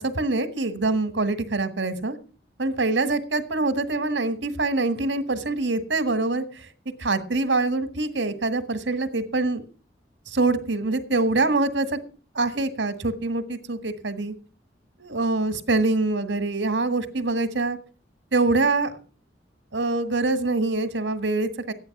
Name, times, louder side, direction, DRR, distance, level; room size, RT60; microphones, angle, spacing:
voice 1, 0.0-2.2 2.6-6.4 7.0-9.6 10.3-11.9 12.4-14.3 15.0-17.8 18.3-18.9 19.7-21.7, right 3 dB, 85° right, 11 dB, 1.8 m, -24 dB
13.5 x 9.6 x 6.0 m, 0.38 s
head